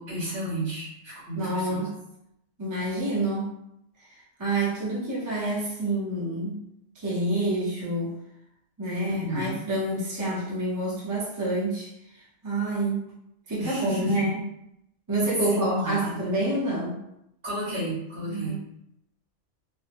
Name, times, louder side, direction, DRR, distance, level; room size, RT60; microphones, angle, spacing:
voice 1, 0.0-1.9 9.1-9.5 13.6-14.3 15.5-16.2 17.4-18.6, equal, 55° right, -8 dB, 1.7 m, -32 dB
voice 2, 1.1-2.0 2.6-3.6 4.0-6.6 6.9-8.1 8.8-13.1 13.5-14.4 15.1-17.0 18.2-18.6, right 2 dB, 25° right, -7 dB, 0.5 m, -28 dB
3.3 x 2.1 x 2.9 m, 0.79 s
omnidirectional pair, 1.3 m